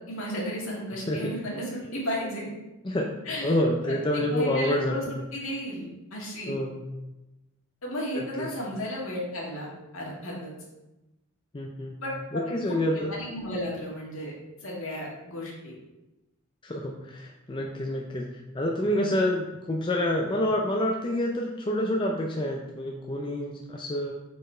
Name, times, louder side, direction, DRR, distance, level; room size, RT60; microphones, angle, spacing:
voice 1, 0.1-2.5 3.3-3.6 3.8-6.5 7.8-9.7 9.9-10.5 12.0-14.3 14.6-15.7, equal, 70° left, -4 dB, 1.8 m, -34 dB
voice 2, 3.4-5.0 6.5-6.8 8.1-8.5 11.5-12.0 12.3-13.1 16.6-24.1, left 1 dB, 20° left, 0 dB, 0.4 m, -28 dB
5.2 x 4.4 x 4.3 m, 1.0 s
head